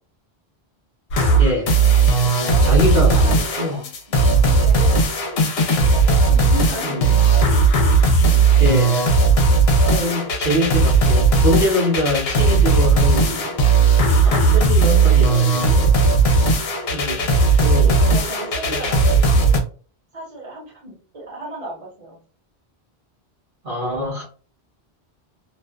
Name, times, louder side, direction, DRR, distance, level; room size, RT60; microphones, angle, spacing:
sound 1, 1.1-19.6, right 3 dB, 75° left, 0.8 m, -16 dB
voice 1, 1.4-1.7 2.6-3.9 6.8-7.2 8.6-9.0 9.8-13.5 13.9-15.9 16.9-17.3 17.6-18.0 18.7-18.8 23.6-24.2, left 1 dB, 55° right, 1.1 m, -24 dB
voice 2, 2.3-4.9 5.9-7.7 17.1-19.6 20.1-22.2, right 1 dB, 35° right, 1.1 m, -35 dB
2.5 x 2.3 x 2.2 m
omnidirectional pair, 1.1 m